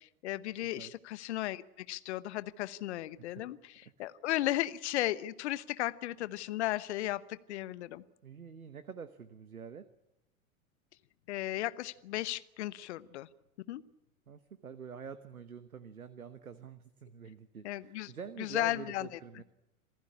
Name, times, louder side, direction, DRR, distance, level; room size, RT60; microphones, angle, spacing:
voice 1, 0.0-8.0 11.3-13.3 13.7-13.8 17.6-18.1 18.4-19.2, left 15 dB, 50° left, 16 dB, 1.1 m, -35 dB
voice 2, 8.2-9.9 14.3-19.4, right 6 dB, 80° right, 13 dB, 1.2 m, -47 dB
27.0 x 15.5 x 9.8 m, 0.94 s
figure-of-eight pair, 95°, 42 cm